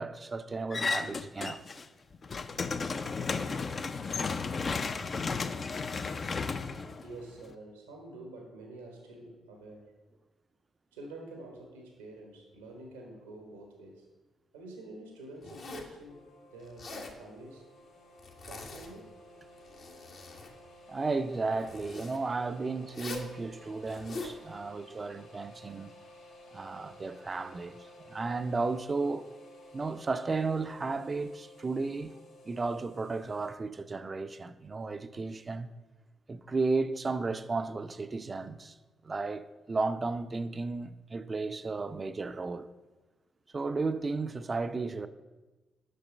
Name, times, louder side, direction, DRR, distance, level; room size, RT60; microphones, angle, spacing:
voice 1, 0.0-1.6 20.9-25.9 26.5-29.3 29.7-32.2 32.4-35.7 36.3-38.7 39.0-42.7 43.5-45.1, right 3 dB, 35° right, 0.4 m, -34 dB
sound 1, 0.7-1.8 2.1-7.5, left 4 dB, 45° left, 0.5 m, -33 dB
voice 2, 7.0-9.9 10.9-14.1 14.5-17.7 18.5-19.2, right 2 dB, 90° right, 1.1 m, -48 dB
Zipper (clothing), 15.4-16.0 16.6-17.2 18.2-19.1 19.5-20.5 21.6-22.2 22.9-23.3 23.8-24.4, left 3 dB, 65° left, 1.1 m, -43 dB
sound 2, 16.1-33.5, left 1 dB, 85° left, 1.5 m, -54 dB
6.6 x 5.8 x 5.2 m
hypercardioid pair, 40°, 0 cm